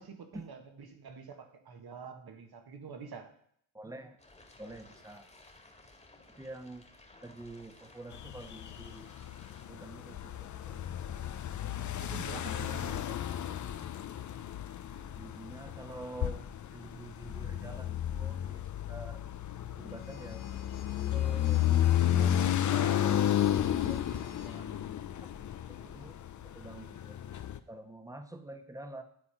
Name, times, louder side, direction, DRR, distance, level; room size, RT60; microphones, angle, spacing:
voice 1, 0.0-3.3 12.0-13.1, right 6 dB, 55° right, 5 dB, 1.7 m, -46 dB
voice 2, 3.7-4.2 4.6-5.3 6.3-6.9 7.2-9.1 9.7-10.8 12.2-13.0 14.9-18.6 18.9-19.2 19.8-20.4 21.1-21.7 22.0-23.2 23.8-24.8 25.2-25.5 25.8-29.0, right 1 dB, 5° right, 7 dB, 1.1 m, -47 dB
sound 1, 4.2-9.7, left 2 dB, 15° left, 1.8 m, -57 dB
sound 2, 8.1-27.6, left 11 dB, 40° left, 0.6 m, -32 dB
sound 3, 19.9-24.6, left 6 dB, 80° left, 1.2 m, -56 dB
10.0 x 4.2 x 5.0 m, 0.65 s
supercardioid pair, 60°, 46 cm